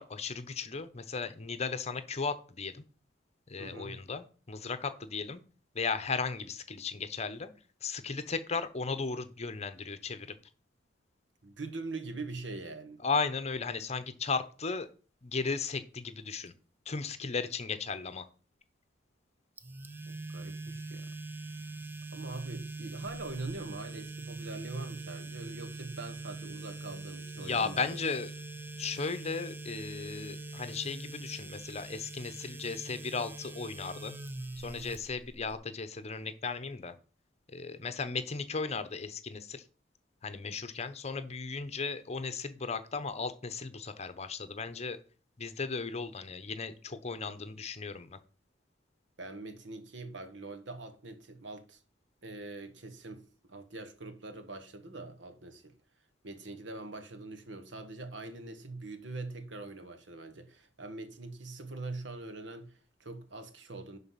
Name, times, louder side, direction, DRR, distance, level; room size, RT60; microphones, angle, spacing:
voice 1, 0.0-2.8 3.5-5.4 5.7-7.5 7.8-10.3 13.0-14.9 15.2-16.5 16.9-18.2 27.4-28.3 28.8-34.2 34.6-36.9 37.5-39.6 40.2-45.0 45.4-48.2, left 4 dB, 35° left, 0.8 m, -36 dB
voice 2, 3.6-4.0 11.4-13.0 20.1-21.1 22.1-28.0 49.2-51.8 52.2-55.7 56.2-64.0, right 2 dB, 75° right, 1.4 m, -43 dB
sound 1, 19.6-35.5, right 3 dB, 10° right, 0.5 m, -43 dB
11.0 x 4.0 x 5.7 m
head